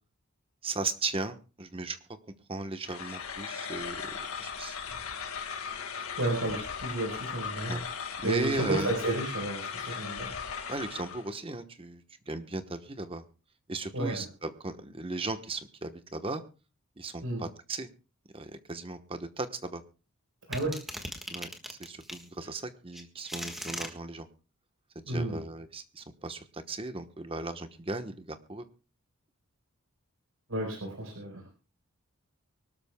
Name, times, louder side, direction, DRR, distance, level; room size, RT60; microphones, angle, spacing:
voice 1, 0.6-2.0 2.5-4.8 7.7-7.8 8.2-8.9 10.7-13.2 13.7-16.4 17.0-17.9 18.3-19.8 21.3-24.3 24.9-28.6, right 3 dB, 25° right, 9 dB, 1.1 m, -36 dB
sound 1, 2.8-11.3, left 6 dB, 75° left, 1.8 m, -38 dB
voice 2, 6.2-7.8 8.2-10.3 13.9-14.2 17.2-17.4 20.5-20.8 25.1-25.4 30.5-31.5, right 2 dB, 70° right, 2 dB, 4.4 m, -32 dB
sound 2, 20.5-22.3 22.9-23.9, equal, ahead, 1.5 m, -38 dB
24.0 x 12.5 x 2.2 m, 0.33 s
head